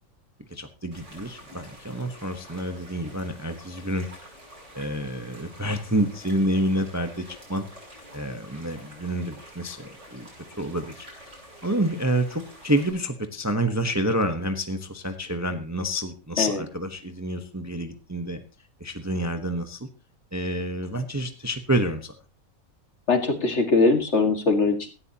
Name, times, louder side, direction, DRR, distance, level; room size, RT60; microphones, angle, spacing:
voice 1, 0.5-4.1 4.7-7.6 8.1-10.3 10.6-18.4 18.8-19.9 20.3-22.1, right 1 dB, 15° right, 7 dB, 0.9 m, -28 dB
sound 1, 0.9-12.9, equal, 60° right, 7.5 m, -48 dB
voice 2, 23.1-24.9, left 3 dB, 50° left, 5 dB, 2.2 m, -21 dB
17.5 x 13.5 x 2.9 m, 0.31 s
omnidirectional pair, 1.5 m